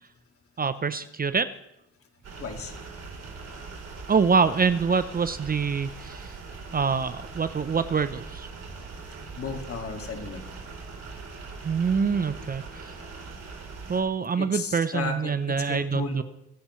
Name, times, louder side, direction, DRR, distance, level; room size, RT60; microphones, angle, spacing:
voice 1, 0.6-1.5 4.1-6.3 6.7-8.5 11.6-12.8 13.9-16.2, right 5 dB, 30° right, 12 dB, 0.7 m, -25 dB
sound 1, 2.2-14.0, right 4 dB, 55° right, 3.6 m, -41 dB
voice 2, 2.4-2.7 9.3-10.6 14.4-16.2, left 5 dB, 50° left, 4 dB, 2.2 m, -34 dB
25.0 x 9.8 x 3.2 m, 0.80 s
cardioid pair, 90°, 30 cm